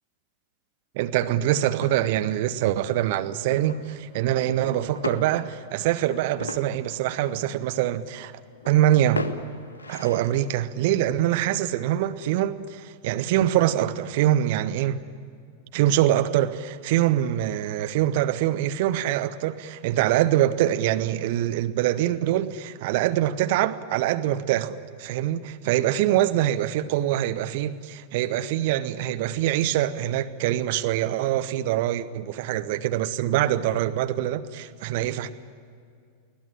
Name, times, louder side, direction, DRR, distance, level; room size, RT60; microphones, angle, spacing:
voice 1, 1.0-8.3 8.7-9.2 9.9-15.0 15.7-35.3, right 12 dB, 50° right, 11 dB, 0.8 m, -24 dB
sound 1, 1.2-12.4, left 3 dB, 70° left, 1.4 m, -40 dB
24.5 x 17.5 x 10.0 m, 2.3 s
figure-of-eight pair, 90°, 0 cm